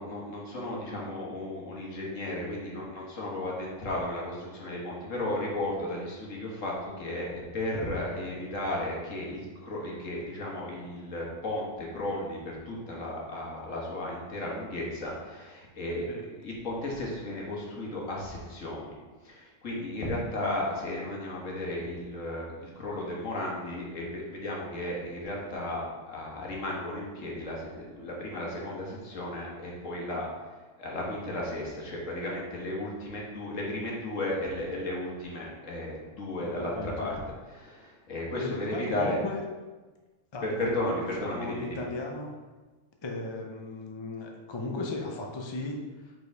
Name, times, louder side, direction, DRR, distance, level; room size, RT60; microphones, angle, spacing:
voice 1, 0.0-19.0 19.2-30.3 30.8-39.2 40.4-41.9, left 1 dB, 55° left, -3 dB, 1.7 m, -34 dB
voice 2, 36.4-37.1 38.4-39.4 40.3-42.3 43.0-46.1, left 2 dB, 40° left, 0 dB, 0.4 m, -36 dB
5.4 x 4.6 x 4.6 m, 1.3 s
omnidirectional pair, 1.6 m